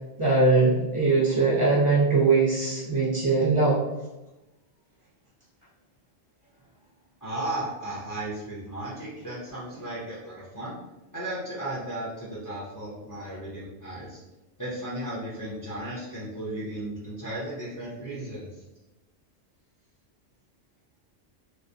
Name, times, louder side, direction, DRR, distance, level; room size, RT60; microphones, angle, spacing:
voice 1, 0.2-3.8, right 3 dB, 30° right, -9 dB, 1.1 m, -21 dB
voice 2, 7.2-10.8 11.1-14.2 14.6-18.5, right 1 dB, 20° left, -8 dB, 0.8 m, -35 dB
3.1 x 3.1 x 2.6 m, 1.0 s
omnidirectional pair, 1.1 m